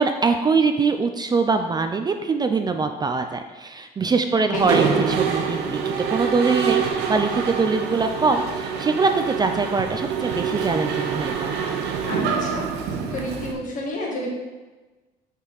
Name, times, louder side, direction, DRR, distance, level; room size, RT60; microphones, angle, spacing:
voice 1, 0.0-5.8 6.1-11.6, right 4 dB, 25° right, 6 dB, 0.4 m, -23 dB
Mechanisms, 4.5-13.5, right 6 dB, 80° right, 0.9 m, -25 dB
voice 2, 12.1-12.7 13.1-14.3, left 1 dB, 50° left, -3 dB, 2.0 m, -30 dB
6.2 x 5.4 x 4.0 m, 1.2 s
cardioid pair, 110°, 17 cm